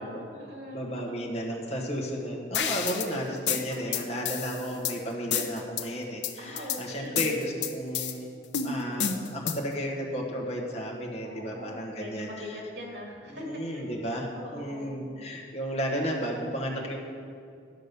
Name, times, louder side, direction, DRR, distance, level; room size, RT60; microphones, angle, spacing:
voice 1, 0.0-0.9 3.0-3.3 3.7-4.1 4.6-4.9 6.4-7.2 11.2-13.4 13.7-14.0 14.3-15.0, equal, 85° right, -1 dB, 2.5 m, -42 dB
voice 2, 0.7-8.4 8.6-12.6 13.3-17.0, equal, 35° left, -2 dB, 1.4 m, -33 dB
sound 1, 2.5-3.1 3.5-5.0 5.3-5.8 6.2-6.8 7.2-8.1 8.5-9.7, left 7 dB, 85° left, 0.7 m, -30 dB
10.5 x 6.4 x 6.7 m, 2.3 s
head